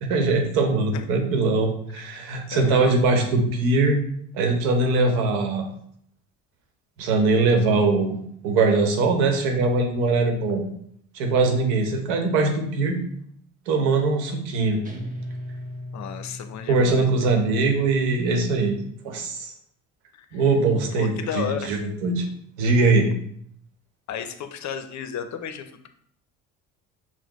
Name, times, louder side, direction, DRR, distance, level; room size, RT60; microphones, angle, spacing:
voice 1, 0.0-4.0 4.3-5.7 7.0-8.2 8.4-10.6 11.1-13.0 13.7-14.8 16.7-18.8 19.0-19.5 20.3-22.3 22.6-23.1, right 3 dB, 80° right, 3 dB, 1.0 m, -21 dB
voice 2, 2.5-3.0 15.9-17.2 20.3-20.4 21.0-21.7 24.1-25.9, left 8 dB, 45° left, 8 dB, 0.6 m, -33 dB
Guitar, 14.8-17.4, left 1 dB, 20° right, 1.0 m, -37 dB
5.9 x 2.1 x 3.0 m, 0.67 s
hypercardioid pair, 65°, 39 cm